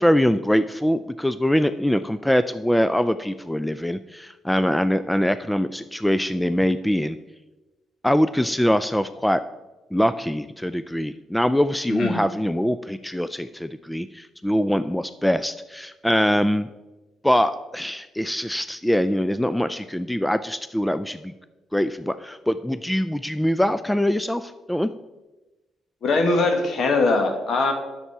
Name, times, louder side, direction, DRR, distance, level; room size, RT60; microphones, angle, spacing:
voice 1, 0.0-7.2 8.0-9.4 9.9-16.7 17.2-21.3 21.7-24.9, equal, 5° left, 12 dB, 0.3 m, -23 dB
voice 2, 11.9-12.2 26.0-27.7, left 3 dB, 55° left, 5 dB, 1.6 m, -21 dB
10.0 x 6.8 x 4.7 m, 1.1 s
cardioid pair, 90°, 0 cm